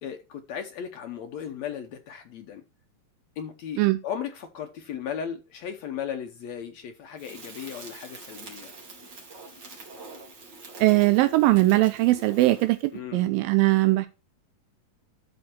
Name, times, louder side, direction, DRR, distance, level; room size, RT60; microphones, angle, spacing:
voice 1, 0.0-2.6 3.4-8.7 12.9-13.3, left 8 dB, 75° left, 1.7 m, -36 dB
Crackle, 7.2-12.9, right 2 dB, 35° right, 2.5 m, -44 dB
voice 2, 10.8-14.1, right 19 dB, 85° right, 2.3 m, -20 dB
12.5 x 4.4 x 4.3 m
omnidirectional pair, 4.1 m